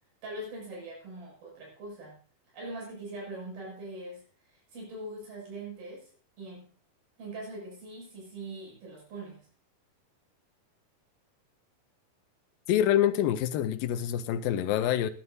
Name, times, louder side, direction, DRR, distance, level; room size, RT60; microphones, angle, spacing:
voice 1, 0.2-2.2 2.5-6.7 7.2-9.5, right 2 dB, 85° right, 8.8 m, -42 dB
voice 2, 12.7-15.1, left 11 dB, 80° left, 2.5 m, -26 dB
20.5 x 12.0 x 2.7 m
omnidirectional pair, 4.2 m